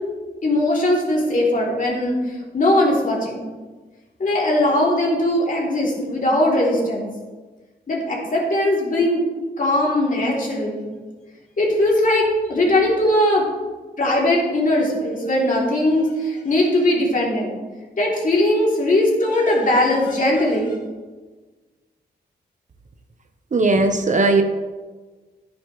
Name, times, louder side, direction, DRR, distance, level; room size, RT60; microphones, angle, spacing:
voice 1, 0.4-3.5 4.2-7.1 7.9-9.2 9.6-10.9 11.6-13.5 14.0-17.6 18.0-20.8, left 1 dB, 50° left, -3 dB, 3.2 m, -20 dB
voice 2, 23.5-24.4, right 3 dB, 45° right, 6 dB, 1.0 m, -17 dB
11.5 x 9.5 x 3.2 m, 1.3 s
cardioid pair, 70°, 18 cm